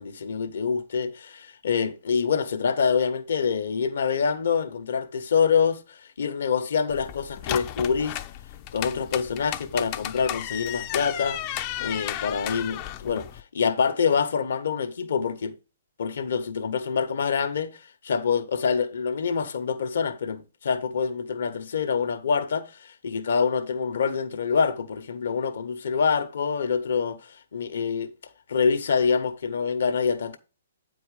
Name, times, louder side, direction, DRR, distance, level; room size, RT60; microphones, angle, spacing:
voice 1, 0.0-8.2 8.7-11.4 11.8-15.5 16.0-28.1 28.5-30.4, left 6 dB, 65° left, 1.1 m, -26 dB
sound 1, 6.9-13.4, left 13 dB, 35° left, 0.6 m, -34 dB
8.7 x 4.6 x 4.9 m
hypercardioid pair, 130°, 0 cm